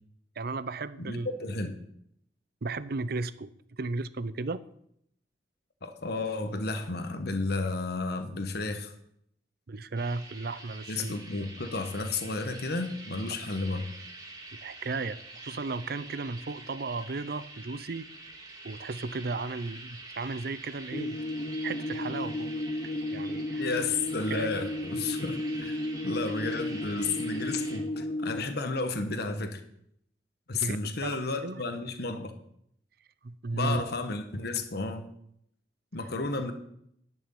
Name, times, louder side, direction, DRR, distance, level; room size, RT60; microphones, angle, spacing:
voice 1, 0.4-1.5 2.6-4.6 9.7-11.1 14.6-18.1 18.6-21.2 21.6-22.5 23.1-23.7 24.3-24.5 30.5-31.6 33.2-33.9, right 3 dB, 60° right, 16 dB, 0.6 m, -35 dB
voice 2, 1.1-1.7 5.8-8.9 10.9-13.9 23.6-25.7 26.0-29.6 30.5-32.3 33.5-35.0 35.9-36.5, left 3 dB, 65° left, 7 dB, 1.3 m, -32 dB
sound 1, 10.0-27.8, right 2 dB, 20° right, 2.0 m, -46 dB
sound 2, 20.9-28.4, left 1 dB, 30° left, 0.7 m, -33 dB
10.5 x 6.3 x 9.1 m, 0.73 s
head